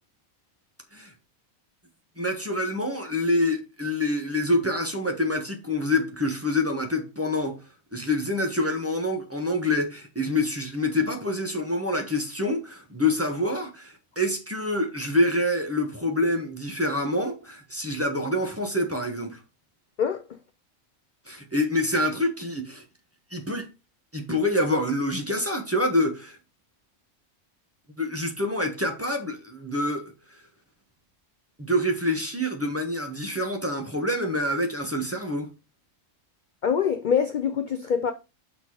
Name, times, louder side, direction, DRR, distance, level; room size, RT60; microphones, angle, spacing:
voice 1, 2.2-7.6 7.9-19.4 21.3-22.8 23.3-23.7 24.1-26.4 28.0-30.1 31.6-35.5, left 1 dB, 10° right, 1.1 m, -26 dB
voice 2, 36.6-38.1, left 7 dB, 60° left, 0.5 m, -24 dB
6.3 x 4.0 x 4.8 m
omnidirectional pair, 1.5 m